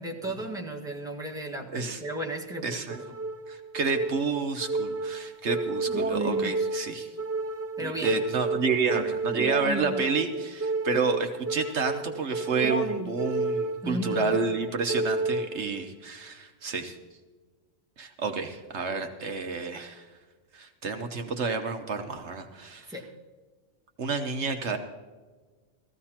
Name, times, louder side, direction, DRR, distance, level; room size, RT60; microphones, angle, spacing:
voice 1, 0.0-3.1 7.8-8.2 13.8-14.4 22.9-23.0, right 1 dB, 5° right, -1 dB, 1.6 m, -35 dB
voice 2, 1.7-2.0 2.6-3.0 3.5-7.1 7.8-17.0 18.0-20.1 20.5-22.9 24.0-24.8, right 4 dB, 65° right, 5 dB, 1.2 m, -30 dB
sound 1, 2.9-15.9, right 2 dB, 20° right, 0.4 m, -31 dB
17.5 x 14.5 x 2.9 m, 1.4 s
omnidirectional pair, 1.3 m